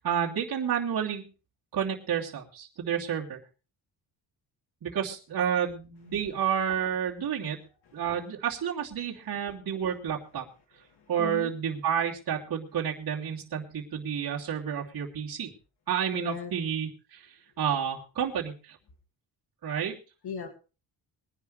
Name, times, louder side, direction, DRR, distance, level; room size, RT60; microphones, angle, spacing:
voice 1, 0.0-1.2 1.7-3.4 4.8-7.6 7.9-10.4 11.1-15.5 15.9-18.8 19.6-20.0, right 8 dB, 55° right, -4 dB, 2.9 m, -30 dB
voice 2, 10.9-11.5 16.1-16.5 20.2-20.5, left 6 dB, 60° left, 4 dB, 2.1 m, -37 dB
22.0 x 11.0 x 3.2 m, 0.34 s
cardioid pair, 125°, 43 cm